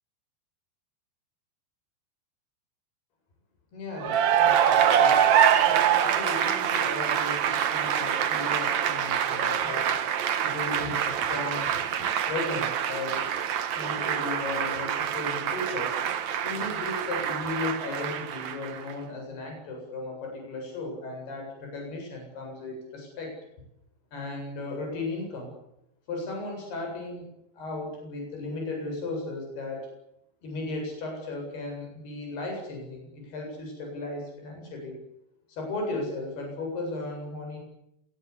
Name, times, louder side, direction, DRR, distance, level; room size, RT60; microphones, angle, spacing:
voice 1, 3.7-5.3 5.6-10.0 10.4-11.7 12.3-13.3 13.7-16.0 16.4-23.3 24.1-25.5 26.1-27.3 27.5-29.9 30.4-35.0 35.5-37.6, left 2 dB, 70° left, 2 dB, 10.0 m, -36 dB
Cheering / Applause, 4.0-18.9, right 9 dB, 55° right, 2.2 m, -25 dB
26.5 x 19.5 x 10.0 m, 0.81 s
omnidirectional pair, 4.8 m